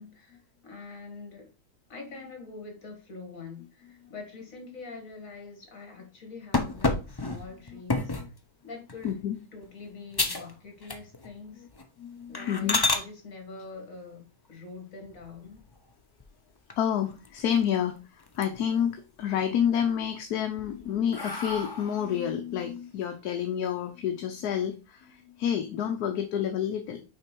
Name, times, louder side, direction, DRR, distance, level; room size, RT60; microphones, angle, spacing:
voice 1, 0.0-1.5 1.9-8.3 8.6-9.1 9.5-11.7 12.3-15.6, left 3 dB, 55° left, 2.5 m, -44 dB
sound 1, 6.5-8.3 8.9-9.2 9.6-9.7 10.1-10.5 10.8-11.3 11.7-11.8 12.3-13.0 15.1-15.7 16.2-16.3 16.7-16.8 17.1-17.9 18.2-18.8 19.2-19.9 20.4-22.1, left 3 dB, 30° left, 0.4 m, -30 dB
voice 2, 9.0-9.4 12.0-12.8 16.8-27.0, left 9 dB, 75° left, 1.2 m, -29 dB
6.2 x 4.5 x 4.5 m
omnidirectional pair, 1.7 m